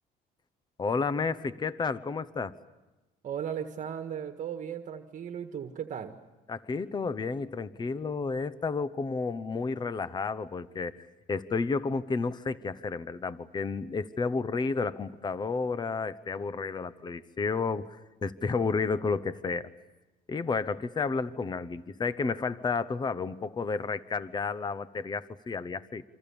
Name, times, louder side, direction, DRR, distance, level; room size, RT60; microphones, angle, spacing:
voice 1, 0.8-2.6 6.5-19.7 20.3-26.0, left 4 dB, 25° left, 15 dB, 1.0 m, -31 dB
voice 2, 3.2-6.2, right 8 dB, 50° right, 6 dB, 1.6 m, -36 dB
28.0 x 26.0 x 7.1 m, 1.1 s
cardioid pair, 110°, 17 cm